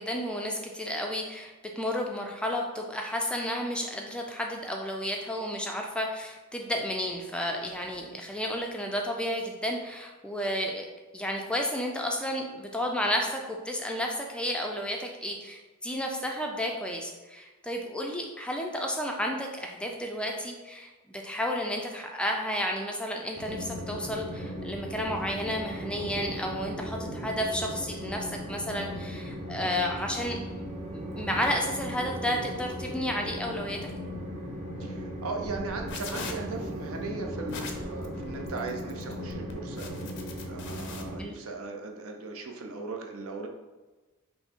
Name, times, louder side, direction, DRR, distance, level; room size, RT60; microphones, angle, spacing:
voice 1, 0.0-10.9 11.1-30.4 30.9-33.8 41.2-41.3, equal, 5° left, 1 dB, 0.4 m, -32 dB
Train, 23.3-41.2, equal, 30° right, 0.8 m, -37 dB
voice 2, 34.8-40.1 40.4-43.5, right 3 dB, 65° right, 3 dB, 0.6 m, -38 dB
sound 1, 35.4-41.0, left 4 dB, 55° left, 0.6 m, -42 dB
5.5 x 2.1 x 4.4 m, 1.2 s
head